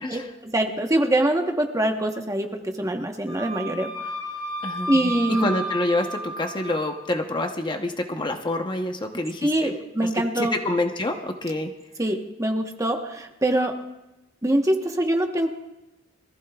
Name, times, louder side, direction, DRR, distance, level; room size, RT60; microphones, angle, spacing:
voice 1, 0.1-4.1 4.9-5.5 9.4-10.6 12.0-13.8 14.4-15.5, right 1 dB, 15° right, 4 dB, 1.1 m, -24 dB
Wind instrument woodwind instrument, 3.3-6.9, equal, 80° left, 4.7 m, -33 dB
voice 2, 5.4-9.7 10.2-11.7, left 2 dB, 25° left, 4 dB, 0.9 m, -27 dB
23.5 x 15.0 x 2.4 m, 0.99 s
head